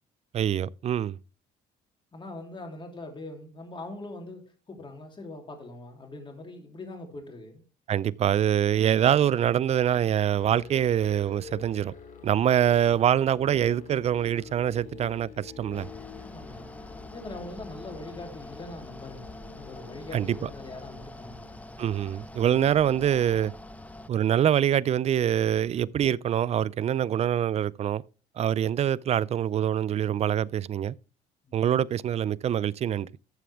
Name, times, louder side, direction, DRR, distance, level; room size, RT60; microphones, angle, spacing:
voice 1, 0.3-1.2 7.9-11.9 12.2-15.9 20.1-20.5 21.8-23.5 24.1-28.0 28.4-30.9 31.5-33.1, right 10 dB, 40° right, 0.4 m, -25 dB
voice 2, 2.1-7.6 16.2-16.7 17.1-21.8 31.4-31.6, left 2 dB, 30° left, 3.0 m, -42 dB
Musical instrument, 10.4-22.0, left 7 dB, 50° left, 2.4 m, -47 dB
Mechanical fan, 15.7-24.1, left 1 dB, 10° left, 0.6 m, -45 dB
12.5 x 7.0 x 3.4 m
cardioid pair, 110°, 17 cm